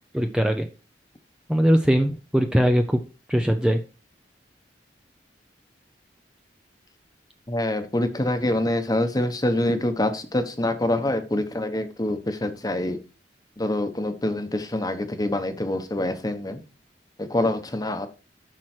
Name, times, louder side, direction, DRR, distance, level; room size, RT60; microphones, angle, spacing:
voice 1, 0.1-0.7 1.5-3.0 3.3-3.8, equal, 5° right, 0.6 m, -20 dB
voice 2, 7.5-13.0 13.6-16.6 17.2-18.1, left 1 dB, 20° left, 1.1 m, -25 dB
7.6 x 6.2 x 4.4 m
head